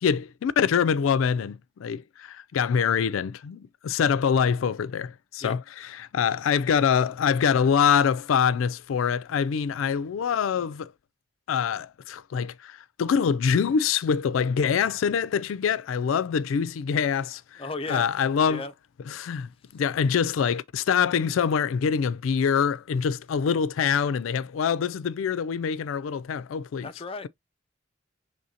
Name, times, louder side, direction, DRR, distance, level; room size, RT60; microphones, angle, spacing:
voice 1, 0.0-10.9 11.5-17.6 17.9-18.6 19.1-26.9, left 7 dB, 90° left, 0.4 m, -25 dB
voice 2, 17.6-18.1 18.4-18.7 26.8-27.3, left 3 dB, 30° left, 0.5 m, -35 dB
6.3 x 3.2 x 2.7 m
head